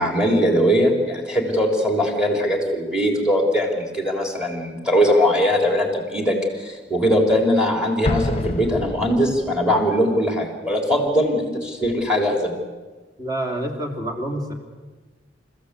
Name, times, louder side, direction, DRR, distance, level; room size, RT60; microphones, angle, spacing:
voice 1, 0.0-12.5, equal, 5° right, 2 dB, 3.7 m, -20 dB
Explosion, 8.0-9.7, left 2 dB, 35° left, 1.0 m, -27 dB
voice 2, 13.2-14.5, right 1 dB, 20° right, 3 dB, 3.3 m, -27 dB
29.5 x 15.5 x 8.3 m, 1.3 s
head